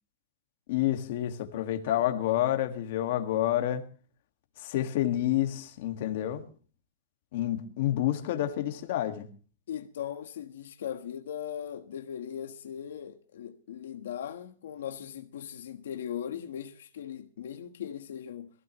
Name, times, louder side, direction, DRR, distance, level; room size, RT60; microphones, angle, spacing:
voice 1, 0.7-3.9 4.6-6.5 7.3-9.3, left 12 dB, 40° left, 1.8 m, -29 dB
voice 2, 9.7-18.5, left 9 dB, 70° left, 1.3 m, -39 dB
23.0 x 15.5 x 3.1 m
supercardioid pair, 180°, 0 cm